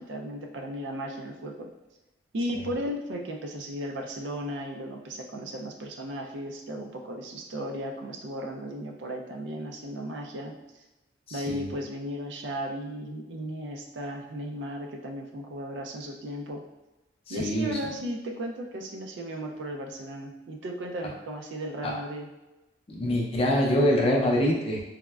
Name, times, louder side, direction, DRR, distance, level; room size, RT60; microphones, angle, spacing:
voice 1, 0.0-1.7 2.3-10.8 11.3-16.7 17.3-22.3, equal, 70° right, 2 dB, 0.4 m, -35 dB
voice 2, 11.3-11.7 17.3-17.8 21.8-21.9 22.9-24.9, equal, 30° left, -1 dB, 0.4 m, -25 dB
3.5 x 2.0 x 2.2 m, 0.99 s
head